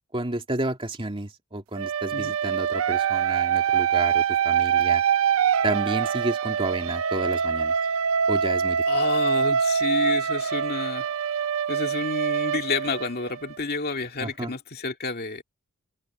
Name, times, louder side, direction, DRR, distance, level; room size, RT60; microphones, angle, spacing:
voice 1, 0.1-5.0 5.6-7.7 8.3-8.8 14.2-14.5, right 2 dB, 25° right, 2.5 m, -31 dB
sound 1, 1.8-13.6, right 7 dB, 65° right, 0.5 m, -24 dB
voice 2, 8.9-11.1 11.7-15.4, left 3 dB, 45° left, 2.3 m, -30 dB
head